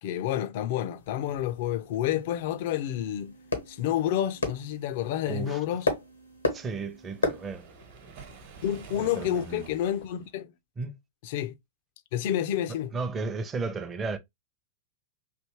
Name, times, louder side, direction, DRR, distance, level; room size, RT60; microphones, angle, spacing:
voice 1, 0.0-3.4 3.7-5.9 8.6-10.5 11.2-11.5 12.1-13.0, left 11 dB, 50° left, 0.4 m, -29 dB
sound 1, 1.0-9.8, left 3 dB, 85° left, 0.8 m, -36 dB
sound 2, 1.7-7.6, right 4 dB, 85° right, 0.7 m, -56 dB
voice 2, 5.3-5.6 6.5-7.7 9.0-9.7 10.8-11.0 12.9-14.2, right 4 dB, 20° right, 0.6 m, -34 dB
Waves surf, 7.0-10.3, right 6 dB, 55° right, 1.0 m, -49 dB
3.2 x 2.8 x 3.0 m
figure-of-eight pair, 100°, 0 cm